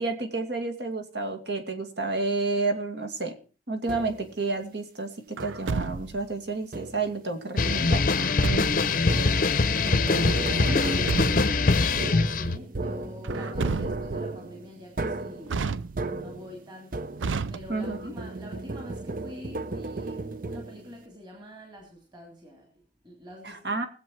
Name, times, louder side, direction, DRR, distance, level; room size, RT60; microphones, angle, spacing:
voice 1, 0.0-3.3 3.7-8.1 17.7-18.1 23.4-23.9, right 3 dB, 65° right, 2.3 m, -30 dB
sound 1, 3.9-4.4 5.4-5.9 6.7-7.3 9.0-17.5 17.8-21.0, right 2 dB, 45° right, 0.7 m, -35 dB
Truck, 5.4-6.3 8.2-9.0 10.7-11.7 13.2-14.3 15.5-16.3 17.2-18.1, right 4 dB, 85° right, 0.5 m, -32 dB
sound 2, 7.6-12.6, left 3 dB, 45° left, 0.7 m, -23 dB
voice 2, 9.2-23.8, left 1 dB, 25° right, 3.0 m, -45 dB
20.5 x 7.9 x 4.6 m
head